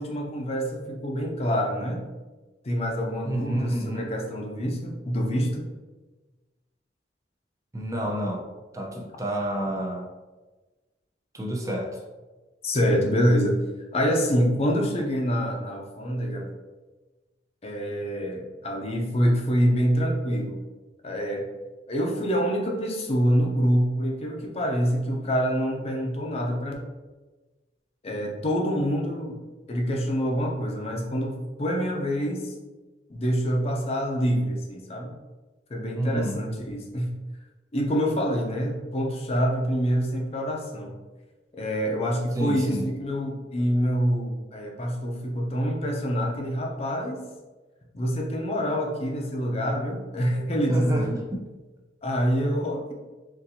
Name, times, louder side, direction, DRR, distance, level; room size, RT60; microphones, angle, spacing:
voice 1, 0.0-2.0 2.6-5.7 8.1-8.2 12.6-13.6 13.9-16.5 17.6-20.6 21.0-21.5 21.9-26.7 28.0-29.4 29.7-32.6 33.1-35.1 35.7-37.1 37.7-41.0 41.5-47.3 47.9-51.1 52.0-52.9, equal, 35° left, 1 dB, 0.5 m, -26 dB
voice 2, 3.2-4.0 7.7-10.1 11.3-12.0 35.9-36.4 42.3-42.9 50.7-51.4, right 1 dB, 20° right, -1 dB, 0.5 m, -29 dB
4.0 x 2.6 x 2.7 m, 1.2 s
head